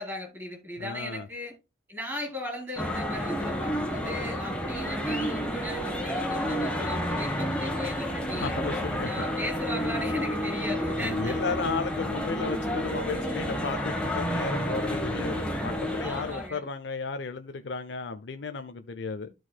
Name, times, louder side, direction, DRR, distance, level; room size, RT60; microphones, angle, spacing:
voice 1, 0.0-1.5 1.9-8.5 9.0-11.4 13.1-13.7 15.5-15.6 16.0-16.7, left 1 dB, 15° right, 3.8 m, -37 dB
voice 2, 0.8-1.3 8.3-9.1 11.0-19.3, left 4 dB, 90° left, 0.6 m, -34 dB
sound 1, 2.8-16.5, equal, 5° left, 1.3 m, -30 dB
13.0 x 4.7 x 2.2 m
head